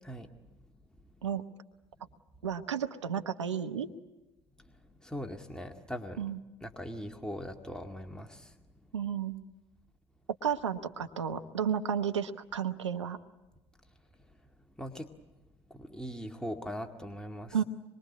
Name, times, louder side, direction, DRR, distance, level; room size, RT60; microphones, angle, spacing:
voice 1, 0.0-0.3 4.6-6.3 6.6-8.6 14.8-15.3 15.7-17.6, equal, 5° left, 4 dB, 2.0 m, -41 dB
voice 2, 2.4-3.9 6.2-6.4 8.9-9.4 10.4-13.2 17.5-17.6, right 8 dB, 85° right, 8 dB, 1.0 m, -32 dB
26.0 x 22.5 x 8.4 m, 1.1 s
figure-of-eight pair, 55°, 15 cm